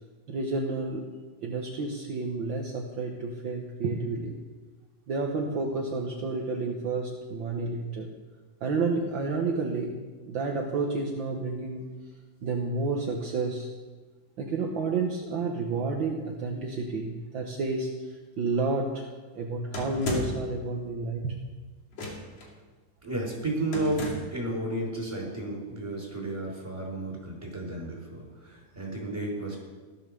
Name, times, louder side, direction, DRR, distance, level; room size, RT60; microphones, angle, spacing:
voice 1, 0.3-1.1 1.4-4.4 5.1-8.1 8.6-10.0 10.3-11.9 12.4-13.7 14.4-19.1 19.3-21.3, right 3 dB, 55° right, 0 dB, 1.4 m, -30 dB
sound 1, 19.7-20.5 21.9-22.5 23.7-24.4, left 2 dB, 50° left, 3.6 m, -34 dB
voice 2, 23.0-29.6, right 1 dB, 10° right, -2 dB, 5.3 m, -32 dB
16.0 x 12.5 x 6.9 m, 1.3 s
omnidirectional pair, 3.8 m